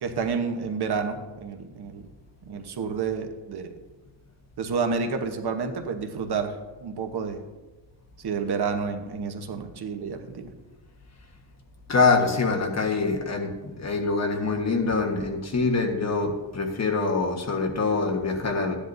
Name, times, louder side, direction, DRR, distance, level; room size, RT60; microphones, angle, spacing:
voice 1, 0.0-2.1 2.4-3.8 4.6-7.4 8.2-10.5, right 5 dB, 60° right, 6 dB, 1.1 m, -30 dB
voice 2, 11.9-18.8, left 4 dB, 35° left, 3 dB, 1.4 m, -24 dB
14.5 x 10.0 x 2.7 m, 1.2 s
cardioid pair, 125°, 45 cm